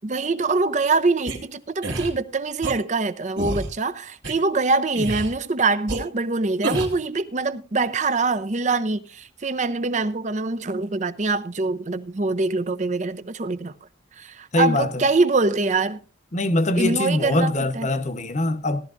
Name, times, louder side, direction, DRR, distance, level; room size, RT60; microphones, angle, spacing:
voice 1, 0.0-13.7 14.2-16.0 16.8-17.9, right 3 dB, 35° right, 0.6 m, -24 dB
sound 1, 1.3-1.4 1.8-2.1 2.6-2.8 3.4-3.7 4.2-4.3 4.9-5.3 5.9-6.0 6.6-7.0, right 2 dB, 70° right, 3.1 m, -27 dB
voice 2, 14.5-14.9 16.3-18.8, left 1 dB, 35° left, 0.9 m, -22 dB
18.0 x 12.0 x 2.5 m
head